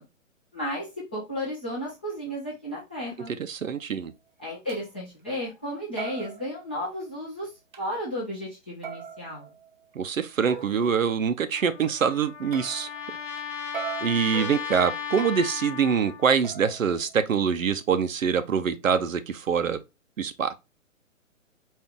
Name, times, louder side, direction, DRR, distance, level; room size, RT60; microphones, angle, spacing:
voice 1, 0.5-3.3 4.4-7.5 7.8-9.5, equal, 10° left, 0.4 m, -33 dB
voice 2, 3.4-4.1 9.9-12.9 14.0-19.8 20.2-20.5, right 6 dB, 75° right, 0.7 m, -25 dB
sound 1, 4.1-4.2 4.7-4.9 5.3-5.7 6.0-7.3 7.7-7.8 8.8-10.9 12.5-13.4 13.7-15.6 16.4-17.6, right 8 dB, 40° right, 0.7 m, -41 dB
Trumpet, 11.5-16.3, left 7 dB, 65° left, 1.0 m, -36 dB
4.4 x 2.5 x 3.5 m
figure-of-eight pair, 135°, 40 cm